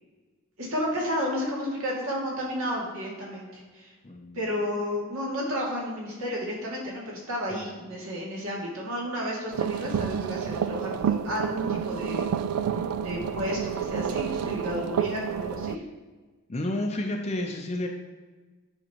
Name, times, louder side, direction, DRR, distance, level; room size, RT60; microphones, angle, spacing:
voice 1, 0.6-3.9 4.3-12.3 13.0-15.8, equal, 70° right, -4 dB, 2.4 m, -32 dB
voice 2, 4.0-4.4 16.5-17.9, left 1 dB, 30° left, 2 dB, 0.5 m, -30 dB
sound 1, 9.5-15.8, right 8 dB, 90° right, 0.3 m, -29 dB
10.0 x 5.4 x 3.0 m, 1.3 s
head